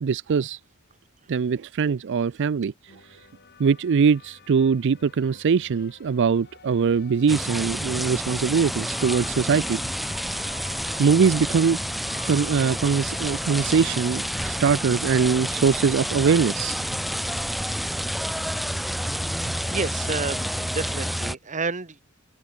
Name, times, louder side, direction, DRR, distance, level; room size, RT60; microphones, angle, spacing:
voice 1, 0.0-0.6 1.3-3.2 3.6-9.8 11.0-11.8 12.3-16.8, right 6 dB, 55° right, 0.4 m, -22 dB
sound 1, 2.9-21.1, left 4 dB, 50° left, 5.1 m, -48 dB
sound 2, 7.3-21.4, equal, ahead, 0.5 m, -29 dB
voice 2, 19.7-22.0, right 4 dB, 35° right, 1.5 m, -30 dB
head